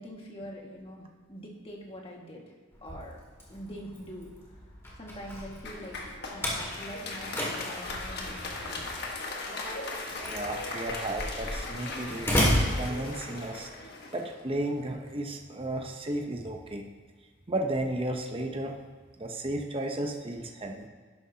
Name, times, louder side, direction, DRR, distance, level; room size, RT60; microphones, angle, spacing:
voice 1, 0.0-2.4 2.8-3.2 3.5-4.3 5.0-6.0 6.3-9.1, equal, 25° left, -2 dB, 1.9 m, -44 dB
Slam, 2.7-13.6, left 1 dB, 10° left, 2.1 m, -34 dB
Applause, 5.6-15.0, left 2 dB, 50° left, 1.5 m, -38 dB
voice 2, 10.3-12.5 12.7-13.7 14.1-16.8 17.5-18.8 19.2-20.9, right 1 dB, 25° right, 2 dB, 0.8 m, -33 dB
11.5 x 11.5 x 2.9 m, 1.5 s
head